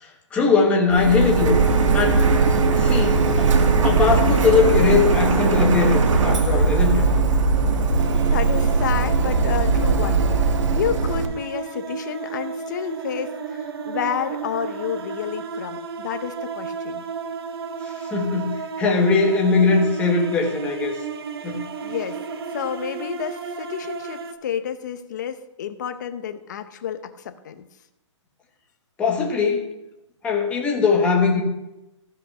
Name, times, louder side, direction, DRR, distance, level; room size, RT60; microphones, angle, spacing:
voice 1, 0.0-1.5 1.9-2.3 2.7-3.5 3.8-7.0 17.8-21.0 21.4-21.6 29.0-29.7 30.2-31.4, left 4 dB, 10° left, 0 dB, 1.1 m, -20 dB
Printer, 0.9-11.3, right 4 dB, 75° right, 1.5 m, -19 dB
sound 1, 8.0-24.3, right 5 dB, 50° right, 1.0 m, -33 dB
voice 2, 8.3-10.3 10.7-17.0 21.4-22.2 22.5-27.7, left 8 dB, 35° left, 10 dB, 0.8 m, -30 dB
15.0 x 5.3 x 5.6 m, 0.94 s
hypercardioid pair, 175°, 16 cm